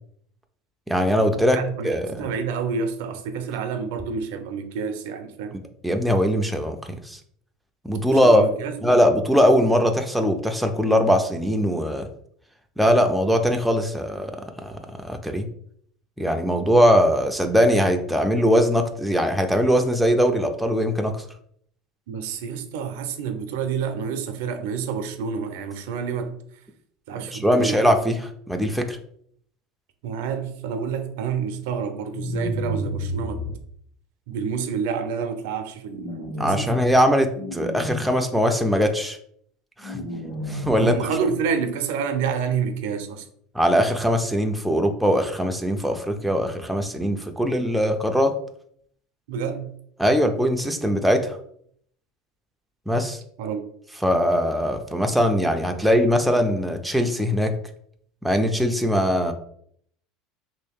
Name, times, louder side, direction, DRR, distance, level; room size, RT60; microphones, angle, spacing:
voice 1, 0.9-1.6 1.8-2.2 5.5-6.8 7.0-7.2 7.8-8.4 8.8-12.1 12.8-14.4 14.6-14.7 15.1-15.5 16.2-21.2 27.3-29.0 36.4-39.2 39.8-40.0 40.5-41.0 43.5-48.3 50.0-51.4 52.9-53.2 54.0-57.5 58.2-59.3, equal, ahead, 0.3 m, -21 dB
voice 2, 1.5-1.9 2.2-5.6 8.1-9.0 22.1-26.3 27.1-27.8 30.0-33.4 34.3-36.8 40.8-43.2 49.3-49.7 53.4-53.6, right 6 dB, 80° right, 0.5 m, -28 dB
sound 1, 32.1-33.5 35.9-37.0 37.3-38.0 39.8-41.0, equal, 55° left, 1.3 m, -30 dB
3.0 x 2.7 x 3.5 m
supercardioid pair, 140°, 0 cm